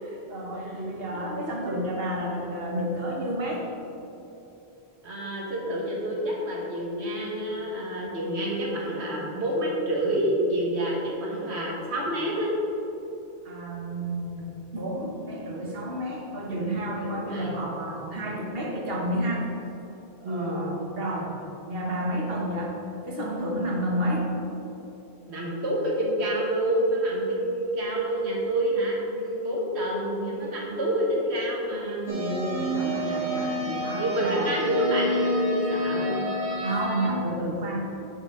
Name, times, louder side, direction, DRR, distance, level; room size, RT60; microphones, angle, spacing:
voice 1, 0.0-3.7 13.4-19.5 20.2-21.3 21.6-24.3 32.1-34.5 36.6-37.8, right 1 dB, 65° right, -1 dB, 1.4 m, -31 dB
voice 2, 5.0-12.6 17.0-17.5 20.2-20.7 25.3-32.1 33.9-36.3, right 1 dB, 80° right, -3 dB, 1.7 m, -28 dB
sound 1, 32.1-37.1, equal, 40° right, 1.6 m, -29 dB
9.5 x 6.3 x 3.7 m, 3.0 s
omnidirectional pair, 1.1 m